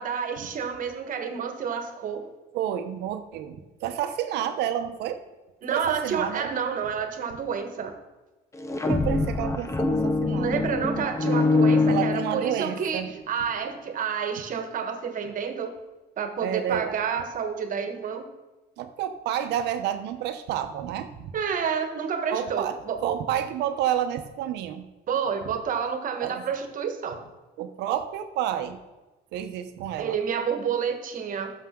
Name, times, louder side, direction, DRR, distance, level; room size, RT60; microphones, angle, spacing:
voice 1, 0.0-2.2 5.6-7.9 10.3-15.7 16.2-18.3 21.3-23.0 25.1-27.2 30.0-31.5, right 6 dB, 50° right, 7 dB, 1.4 m, -29 dB
voice 2, 2.5-5.2 5.7-6.5 8.9-11.3 11.9-13.1 16.4-17.0 18.8-21.4 22.3-22.8 23.0-24.8 26.2-26.4 27.6-28.8 29.3-30.2, right 10 dB, 85° right, 8 dB, 0.9 m, -30 dB
sound 1, 8.5-12.8, left 3 dB, 15° left, 0.9 m, -24 dB
14.0 x 6.6 x 3.8 m, 1.1 s
cardioid pair, 110°, 17 cm